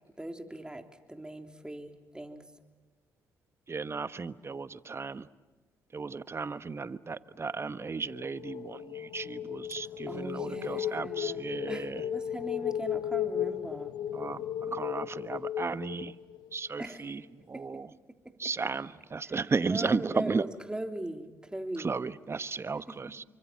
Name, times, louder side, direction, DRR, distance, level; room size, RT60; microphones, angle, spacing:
voice 1, 0.2-2.4 9.8-13.9 16.8-17.1 17.5-17.7 18.2-18.5 19.2-21.9 22.9-23.2, right 1 dB, 10° right, 5 dB, 3.4 m, -40 dB
voice 2, 3.7-5.3 5.9-12.0 14.1-16.1 16.5-17.2 17.5-17.9 18.4-20.4 21.8-23.2, right 4 dB, 35° right, 14 dB, 1.1 m, -34 dB
sound 1, 7.8-16.7, left 10 dB, 75° left, 1.1 m, -35 dB
29.0 x 24.5 x 7.6 m, 1.3 s
hypercardioid pair, 55°, 7 cm